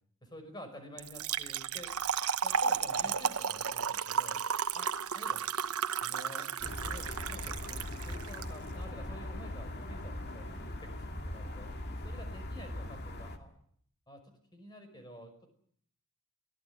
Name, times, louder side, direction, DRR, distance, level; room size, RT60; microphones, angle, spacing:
voice 1, 0.2-1.9 2.4-4.4 4.7-4.9 5.1-5.4 6.0-13.5 14.1-15.5, equal, 20° left, 6 dB, 5.5 m, -50 dB
Trickle dribble / Fill (with liquid), 1.0-8.5, right 7 dB, 85° right, 1.0 m, -33 dB
sound 1, 6.6-13.4, left 1 dB, 45° left, 2.3 m, -40 dB
24.0 x 17.0 x 9.6 m, 0.65 s
head